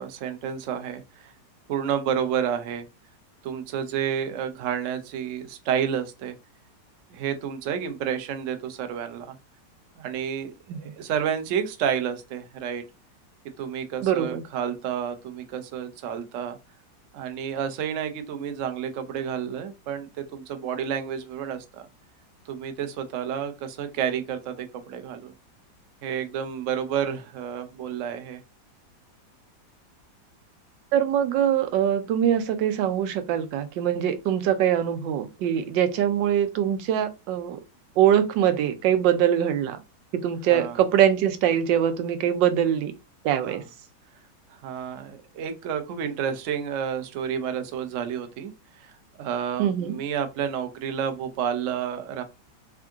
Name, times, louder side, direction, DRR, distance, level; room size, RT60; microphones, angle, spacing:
voice 1, 0.0-1.3 1.7-2.8 3.4-6.3 7.1-9.3 10.0-10.5 10.8-12.8 13.6-16.6 17.1-21.8 22.5-25.3 26.0-28.4 40.5-40.8 43.4-43.6 44.6-48.5 48.8-48.9 49.2-52.2, right 8 dB, 60° right, 0.8 m, -30 dB
voice 2, 14.0-14.4 30.9-37.6 38.0-39.8 40.1-42.9 43.2-43.6 49.6-50.0, right 10 dB, 90° right, 1.3 m, -23 dB
3.7 x 2.4 x 3.5 m
omnidirectional pair, 2.0 m